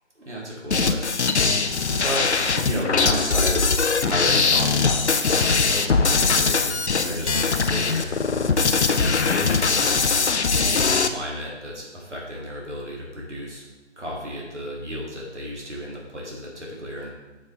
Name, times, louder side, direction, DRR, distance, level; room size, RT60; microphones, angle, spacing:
voice 1, 0.2-1.1 2.0-3.7 4.0-8.1 8.4-10.2 10.6-13.6 14.0-17.1, equal, 80° right, -4 dB, 2.7 m, -33 dB
sound 1, 0.7-11.1, left 4 dB, 70° left, 0.6 m, -21 dB
8.0 x 6.4 x 3.5 m, 1.1 s
figure-of-eight pair, 165°, 35 cm